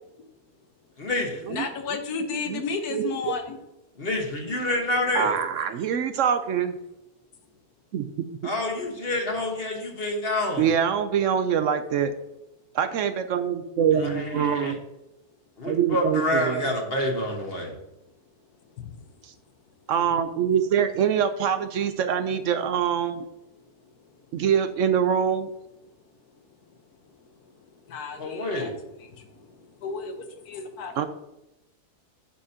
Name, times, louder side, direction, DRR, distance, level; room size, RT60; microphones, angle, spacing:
voice 1, 1.0-1.6 4.0-5.4 8.4-10.7 13.9-14.7 15.6-17.7 28.2-28.7, left 1 dB, 40° left, 2 dB, 1.4 m, -28 dB
voice 2, 1.5-3.6 18.8-19.0 27.9-28.7 29.0-31.0, left 4 dB, 70° left, 7 dB, 1.5 m, -33 dB
voice 3, 2.9-3.4 5.1-6.8 7.9-8.5 10.6-12.1 12.7-14.8 15.6-16.7 19.2-19.3 19.9-23.2 24.3-25.5 31.0-31.1, right 8 dB, 70° right, 10 dB, 0.8 m, -24 dB
8.6 x 7.2 x 2.8 m, 0.91 s
omnidirectional pair, 1.7 m